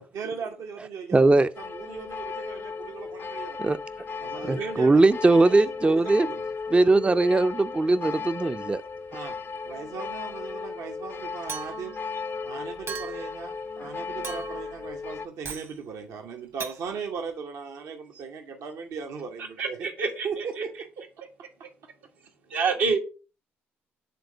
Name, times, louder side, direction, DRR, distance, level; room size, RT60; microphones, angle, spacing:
voice 1, 0.1-3.6 4.2-6.4 9.1-9.4 9.6-11.9 12.4-19.9 20.2-20.9, right 6 dB, 70° right, 0.8 m, -37 dB
voice 2, 1.1-1.5 3.6-3.8 4.5-6.3 6.7-8.8, right 2 dB, 20° right, 0.4 m, -20 dB
sound 1, 1.6-15.3, left 5 dB, 45° left, 0.4 m, -36 dB
Chink clink, 11.5-12.0 12.9-13.3 14.2-14.7 15.4-15.7 16.6-16.8, right 6 dB, 55° right, 1.1 m, -37 dB
voice 3, 19.6-20.6 22.5-23.0, right 4 dB, 90° right, 1.5 m, -27 dB
6.9 x 3.7 x 4.9 m
hypercardioid pair, 50°, 5 cm